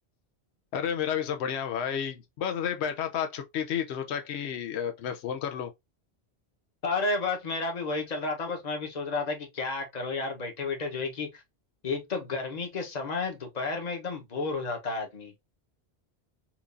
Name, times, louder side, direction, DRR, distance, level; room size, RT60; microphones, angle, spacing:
voice 1, 0.7-5.7, left 8 dB, 85° left, 0.9 m, -31 dB
voice 2, 6.8-11.4 11.8-15.3, left 3 dB, 40° left, 1.0 m, -32 dB
4.5 x 2.4 x 2.5 m
omnidirectional pair, 1.1 m